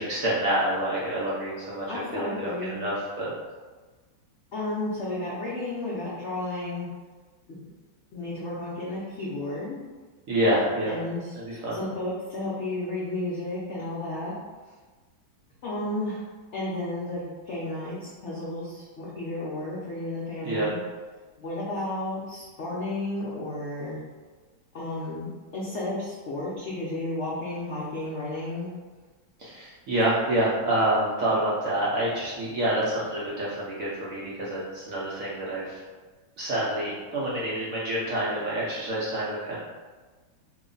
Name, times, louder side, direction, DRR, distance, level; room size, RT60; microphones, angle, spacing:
voice 1, 0.0-1.9 2.1-3.3 10.3-11.0 11.4-11.8 20.4-20.7 29.4-35.8 36.4-39.6, right 1 dB, 65° right, -7 dB, 0.8 m, -27 dB
voice 2, 1.9-2.8 4.5-6.9 7.5-7.6 8.1-9.8 10.8-14.3 15.6-16.2 16.5-20.8 21.4-24.0 24.7-28.7, left 2 dB, 75° left, -7 dB, 0.6 m, -32 dB
3.0 x 2.1 x 3.8 m, 1.3 s
omnidirectional pair, 2.0 m